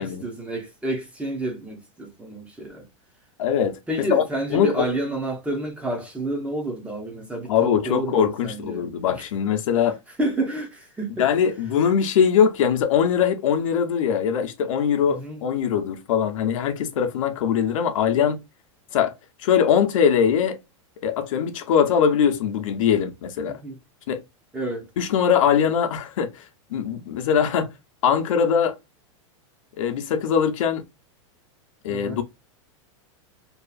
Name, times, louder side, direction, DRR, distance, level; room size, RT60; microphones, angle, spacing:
voice 1, 0.0-2.9 3.9-8.8 9.1-9.2 10.2-11.3 15.1-15.4 23.5-23.8 24.5-24.9 31.9-32.2, right 2 dB, 5° right, 0.6 m, -29 dB
voice 2, 3.4-3.8 4.1-4.2 4.5-4.9 7.5-10.0 11.2-18.4 18.9-19.1 19.4-20.6 21.0-23.6 24.1-24.2 25.0-26.4 26.7-27.7 28.0-28.8 29.8-30.8 31.8-32.2, left 8 dB, 80° left, 0.6 m, -21 dB
2.7 x 2.4 x 2.3 m
supercardioid pair, 145°, 17 cm